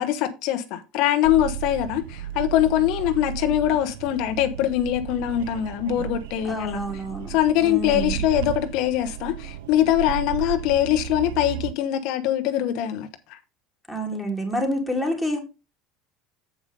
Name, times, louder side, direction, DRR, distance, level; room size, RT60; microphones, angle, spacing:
voice 1, 0.0-6.8 7.3-13.4, left 12 dB, 65° left, 0.9 m, -23 dB
sound 1, 1.2-11.7, right 12 dB, 90° right, 0.3 m, -34 dB
voice 2, 6.4-7.3 7.6-8.2 10.0-10.1 13.9-15.4, equal, ahead, 2.9 m, -28 dB
7.9 x 5.1 x 5.3 m
supercardioid pair, 130°, 0 cm